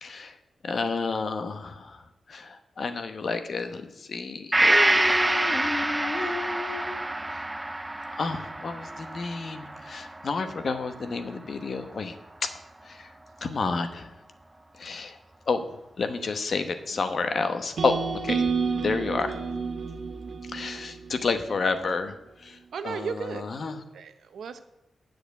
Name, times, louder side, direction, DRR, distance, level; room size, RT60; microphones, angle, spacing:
voice 1, 0.0-0.3 0.6-2.0 2.3-6.9 8.1-12.1 12.9-13.1 13.4-14.1 14.8-15.2 15.5-15.6 16.0-18.0 18.2-18.4 18.8-19.3 20.5-22.1 22.4-22.6 22.8-23.8, left 4 dB, 55° left, 8 dB, 1.0 m, -30 dB
Gong, 4.5-12.2 12.5-12.6, right 1 dB, 15° right, 0.3 m, -27 dB
sound 1, 17.8-21.9, right 5 dB, 70° right, 1.3 m, -30 dB
voice 2, 22.7-23.4 23.9-24.6, right 6 dB, 85° right, 10 dB, 0.8 m, -34 dB
7.9 x 6.8 x 8.1 m, 0.88 s
cardioid pair, 90°, 0 cm